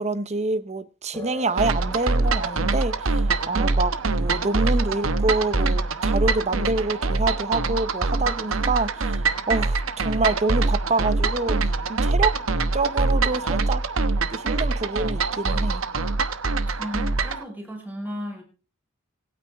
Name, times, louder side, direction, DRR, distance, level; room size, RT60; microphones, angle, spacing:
voice 1, 0.0-11.6 11.9-12.4 12.7-13.8 14.3-15.8, right 3 dB, 35° right, 0.9 m, -26 dB
sound 1, 1.1-9.1, left 1 dB, 10° left, 4.5 m, -46 dB
sound 2, 1.6-17.4, right 3 dB, 80° right, 1.1 m, -24 dB
voice 2, 16.8-18.4, left 1 dB, 10° right, 5.2 m, -34 dB
26.0 x 9.4 x 3.6 m
head